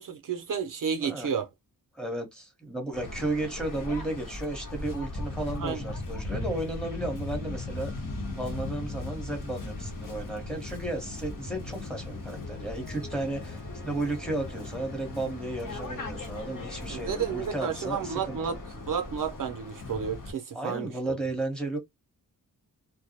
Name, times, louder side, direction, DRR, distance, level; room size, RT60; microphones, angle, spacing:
voice 1, 0.0-1.5 5.6-5.8 16.9-18.6 18.9-21.2, right 7 dB, 60° right, 0.5 m, -31 dB
voice 2, 1.9-7.9 8.3-18.6 20.5-21.8, right 2 dB, ahead, 0.9 m, -34 dB
Waves surf, 2.9-20.3, left 2 dB, 60° left, 0.9 m, -38 dB
sound 1, 7.4-18.7, left 2 dB, 35° left, 0.9 m, -51 dB
2.3 x 2.0 x 2.7 m
wide cardioid pair, 90°, 36 cm